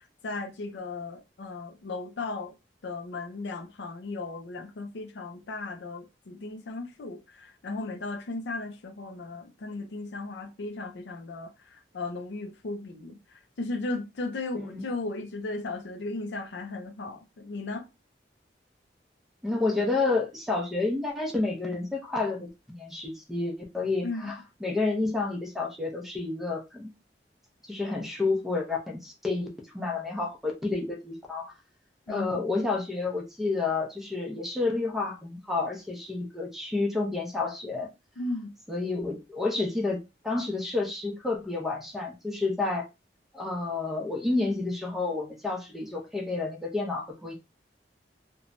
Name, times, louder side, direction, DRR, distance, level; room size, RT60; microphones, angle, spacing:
voice 1, 0.2-2.5 2.8-11.5 11.9-13.2 13.6-17.8 24.0-24.3 32.1-32.3 38.2-38.5, left 2 dB, 75° left, 0.5 m, -36 dB
voice 2, 19.4-26.9 27.7-31.5 32.1-37.9 38.7-42.9 43.3-47.3, left 3 dB, ahead, 0.6 m, -30 dB
3.0 x 2.2 x 2.5 m
head